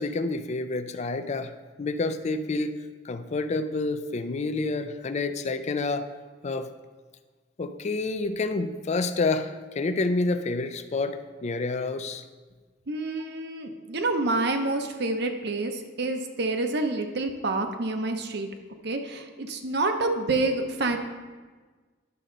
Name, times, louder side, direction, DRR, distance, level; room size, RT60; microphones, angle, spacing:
voice 1, 0.0-1.5 1.8-2.8 3.0-6.1 6.4-6.7 7.6-12.2, left 3 dB, 35° left, 10 dB, 0.4 m, -28 dB
voice 2, 12.9-18.5 18.8-21.0, right 2 dB, 60° right, 6 dB, 0.8 m, -28 dB
10.5 x 6.3 x 3.9 m, 1.4 s
head